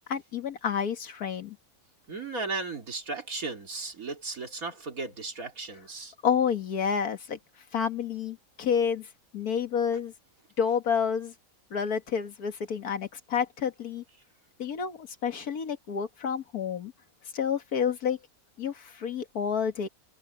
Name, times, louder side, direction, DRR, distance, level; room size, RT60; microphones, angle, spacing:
voice 1, 0.1-1.6 6.2-7.4 7.7-9.1 9.3-10.1 10.6-11.3 11.7-14.0 14.6-16.9 17.3-18.2 18.6-19.9, left 7 dB, 85° left, 2.0 m, -29 dB
voice 2, 2.1-6.1, right 3 dB, 70° right, 3.3 m, -35 dB
open air
omnidirectional pair, 1.6 m